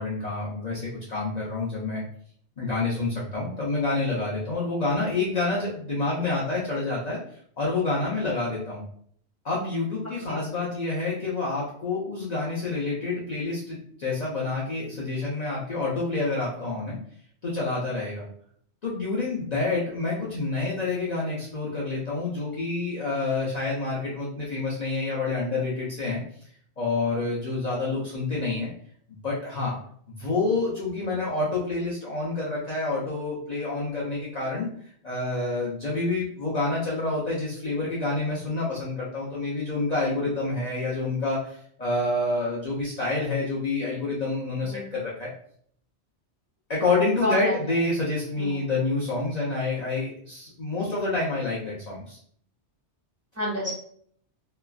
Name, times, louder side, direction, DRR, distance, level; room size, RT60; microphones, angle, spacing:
voice 1, 0.0-2.0 2.6-7.2 7.6-8.8 9.4-17.0 17.4-18.3 18.8-26.2 26.8-28.7 29.2-29.8 30.2-34.7 35.0-45.3 46.7-52.2, left 3 dB, 45° left, -6 dB, 0.6 m, -28 dB
voice 2, 47.2-47.6 48.4-48.6 53.4-53.7, left 1 dB, 15° right, -6 dB, 0.9 m, -29 dB
3.0 x 2.3 x 2.3 m, 0.62 s
omnidirectional pair, 1.2 m